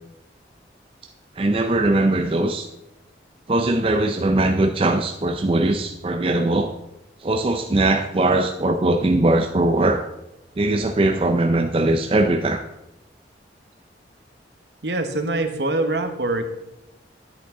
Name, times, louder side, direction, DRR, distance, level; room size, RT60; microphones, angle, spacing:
voice 1, 1.4-2.7 3.5-6.7 7.2-10.0 10.6-12.6, right 2 dB, 30° right, 5 dB, 0.4 m, -20 dB
voice 2, 14.8-16.5, right 2 dB, 65° right, 7 dB, 1.1 m, -24 dB
10.0 x 8.3 x 3.7 m, 0.89 s
head